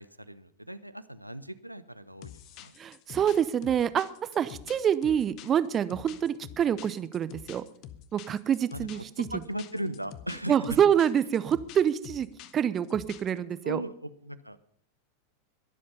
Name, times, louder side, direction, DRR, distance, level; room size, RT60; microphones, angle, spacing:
voice 1, 0.0-2.7 8.7-9.0 9.3-10.8 13.6-14.7, right 1 dB, 90° right, 13 dB, 0.7 m, -38 dB
sound 1, 2.2-13.4, left 10 dB, 40° left, 0.9 m, -47 dB
voice 2, 2.8-7.6 8.1-9.0 10.5-12.3 12.5-13.8, right 9 dB, 25° right, 15 dB, 0.7 m, -26 dB
22.0 x 7.7 x 5.4 m, 0.63 s
figure-of-eight pair, 90°, 0 cm